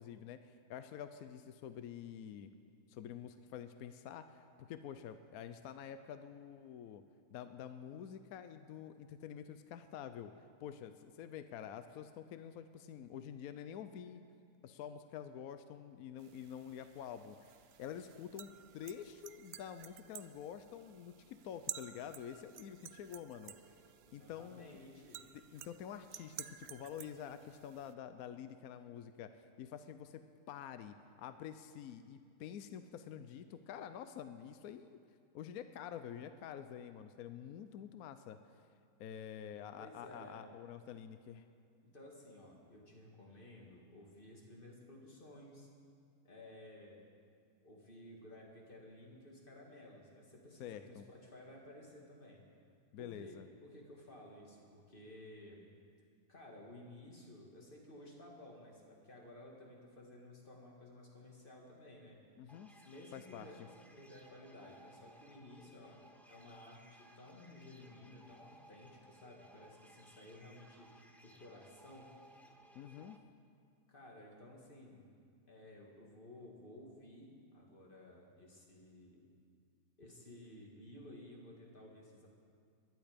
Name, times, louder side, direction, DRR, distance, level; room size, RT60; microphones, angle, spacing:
voice 1, 0.0-2.5 2.9-7.0 7.3-10.3 10.6-14.2 14.6-23.8 24.1-24.8 25.5-30.2 30.5-35.0 35.3-38.4 39.0-41.4 50.6-51.1 52.9-53.5 62.4-62.7 63.1-63.5 72.7-73.2, left 9 dB, 70° left, 10 dB, 1.0 m, -48 dB
sound 1, 16.2-27.9, right 10 dB, 75° right, 0.5 m, -53 dB
voice 2, 24.2-25.3 39.8-40.4 41.8-45.7 46.2-47.0 47.6-52.4 53.0-55.7 56.3-62.2 62.5-63.6 63.9-66.0 66.3-72.1 73.9-75.1 75.5-79.2 80.0-82.3, left 1 dB, 35° left, -1 dB, 2.3 m, -55 dB
sound 2, 62.5-73.2, equal, ahead, 0.5 m, -62 dB
21.5 x 11.0 x 5.2 m, 2.3 s
omnidirectional pair, 1.7 m